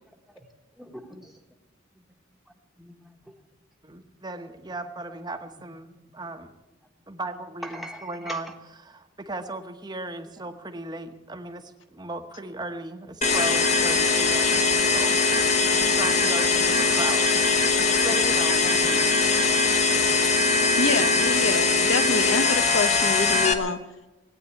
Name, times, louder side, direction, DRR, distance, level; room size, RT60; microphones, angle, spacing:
voice 1, 0.8-1.3 2.8-3.2 5.5-5.6 7.6-8.4 18.5-19.0, equal, ahead, 2 dB, 1.3 m, -40 dB
voice 2, 3.8-6.5 7.1-8.5 8.8-15.2 15.9-17.3 17.8-18.6, right 2 dB, 20° right, 6 dB, 1.1 m, -36 dB
sound 1, 13.2-23.5, left 4 dB, 35° left, 1.1 m, -21 dB
voice 3, 20.8-23.8, left 4 dB, 85° left, 9 dB, 1.2 m, -26 dB
19.0 x 9.1 x 8.4 m, 1.0 s
head